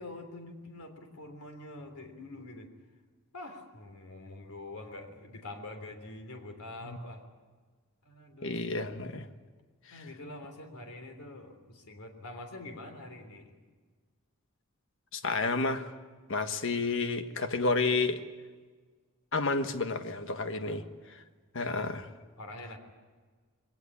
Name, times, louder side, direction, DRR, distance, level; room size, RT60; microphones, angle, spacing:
voice 1, 0.0-2.7 3.3-7.2 8.0-8.6 9.9-13.5 20.5-20.9 22.4-22.8, left 2 dB, 90° left, 5 dB, 3.4 m, -45 dB
voice 2, 8.4-9.3 15.1-15.9 16.3-18.2 19.3-20.8 21.5-22.1, left 3 dB, 60° left, 8 dB, 1.4 m, -30 dB
22.0 x 18.5 x 9.8 m, 1.5 s
head